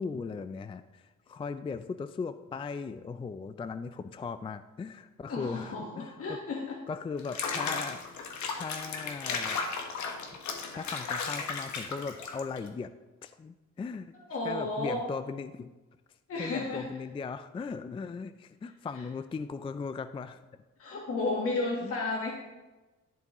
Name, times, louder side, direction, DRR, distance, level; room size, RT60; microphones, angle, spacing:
voice 1, 0.0-6.4 6.9-8.0 8.5-9.6 10.7-12.9 13.2-14.1 14.4-15.7 16.4-20.4 21.8-22.0, left 5 dB, 20° left, 11 dB, 0.3 m, -38 dB
voice 2, 5.3-6.8 14.3-15.1 16.3-16.9 20.8-22.3, left 3 dB, 50° left, -1 dB, 1.4 m, -32 dB
Water / Bathtub (filling or washing), 7.2-12.7, left 5 dB, 70° left, 1.3 m, -35 dB
11.0 x 7.1 x 3.0 m, 1.1 s
cardioid pair, 90°, 30 cm